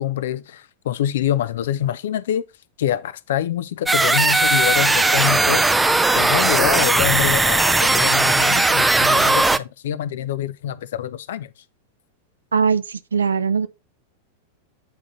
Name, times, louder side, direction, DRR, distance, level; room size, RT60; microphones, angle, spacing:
voice 1, 0.0-2.4 2.8-5.7 6.1-11.5, left 11 dB, 60° left, 0.6 m, -25 dB
sound 1, 3.9-9.6, right 2 dB, 10° right, 0.4 m, -17 dB
voice 2, 12.5-13.7, right 5 dB, 70° right, 0.5 m, -20 dB
8.6 x 3.7 x 4.0 m
figure-of-eight pair, 90°, 0 cm